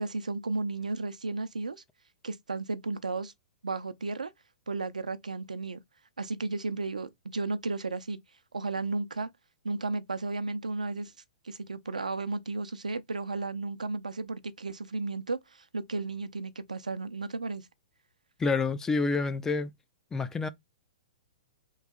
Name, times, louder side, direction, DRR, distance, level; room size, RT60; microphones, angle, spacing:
voice 1, 0.0-1.8 2.2-3.3 3.6-4.3 4.7-5.8 6.2-8.2 8.5-9.3 9.6-11.1 11.4-17.7, right 3 dB, 85° right, 0.6 m, -34 dB
voice 2, 18.4-19.7 20.1-20.5, left 4 dB, 15° left, 0.4 m, -28 dB
3.1 x 2.6 x 3.7 m
figure-of-eight pair, 115°, 4 cm